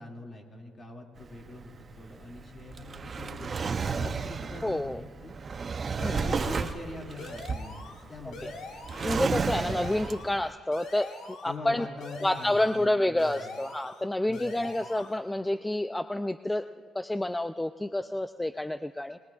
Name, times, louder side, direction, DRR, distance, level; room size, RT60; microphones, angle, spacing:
voice 1, 0.0-5.3 6.0-8.6 11.4-13.5 14.3-14.8, left 2 dB, 40° left, 1 dB, 2.3 m, -43 dB
Drawer open or close, 1.2-10.5, right 5 dB, 40° right, 0.6 m, -33 dB
voice 2, 4.6-5.0 6.0-6.2 8.3-8.5 9.0-11.9 12.2-16.7 16.9-19.2, left 1 dB, 10° left, 11 dB, 0.3 m, -29 dB
sound 1, 6.0-6.9 7.2-8.0 8.3-9.2 9.5-10.4 10.7-11.6 12.0-12.9 13.2-14.0 14.3-15.2, left 3 dB, 75° left, 1.5 m, -43 dB
23.5 x 19.5 x 2.4 m, 2.2 s
cardioid pair, 90°, 0 cm